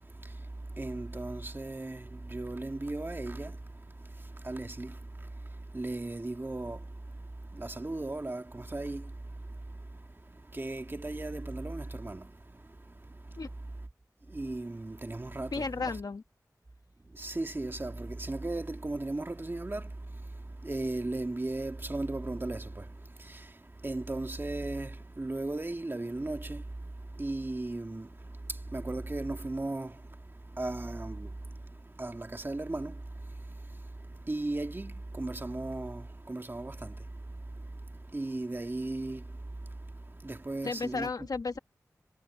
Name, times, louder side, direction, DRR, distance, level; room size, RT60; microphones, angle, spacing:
voice 1, 0.0-13.9 14.2-16.0 17.0-41.3, right 2 dB, 35° right, 2.1 m, -37 dB
voice 2, 15.5-16.2 40.6-41.6, left 4 dB, 75° left, 1.7 m, -33 dB
wide cardioid pair, 70°, 7 cm